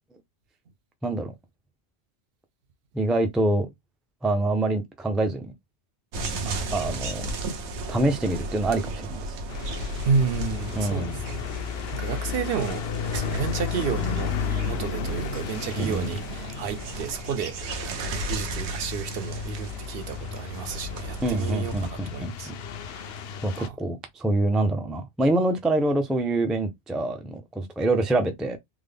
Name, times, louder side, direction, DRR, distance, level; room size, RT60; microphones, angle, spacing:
voice 1, 1.0-1.4 2.9-3.7 4.2-5.5 6.7-7.3 7.9-9.4 10.7-11.2 15.8-16.1 21.2-22.5 23.4-28.6, right 2 dB, ahead, 0.3 m, -25 dB
sound 1, 6.1-21.9, right 1 dB, 85° right, 1.0 m, -35 dB
voice 2, 6.4-6.7 10.0-11.5 11.9-12.8 13.1-14.4 14.6-22.5 22.8-23.2 23.6-23.8, right 6 dB, 65° right, 0.7 m, -31 dB
sound 2, 9.5-23.7, left 6 dB, 70° left, 0.8 m, -33 dB
3.6 x 2.1 x 3.4 m
omnidirectional pair, 1.1 m